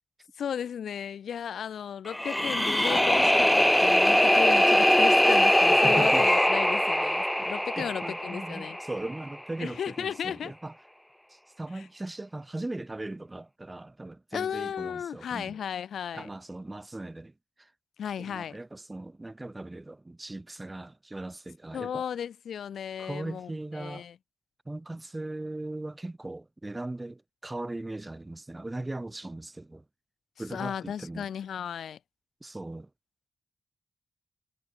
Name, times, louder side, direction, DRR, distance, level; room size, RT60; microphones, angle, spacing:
voice 1, 0.4-8.8 9.6-10.5 11.7-11.9 14.3-16.3 18.0-18.6 21.7-24.2 30.5-32.0, left 8 dB, 80° left, 3.0 m, -35 dB
sound 1, 2.1-9.2, left 1 dB, 5° left, 0.3 m, -22 dB
voice 2, 5.7-6.3 7.8-10.7 11.3-15.6 16.1-17.3 17.6-17.7 18.2-22.0 23.0-24.1 24.7-29.8 30.4-31.3 32.4-32.9, right 2 dB, 20° right, 2.6 m, -38 dB
cardioid pair, 75°, 0 cm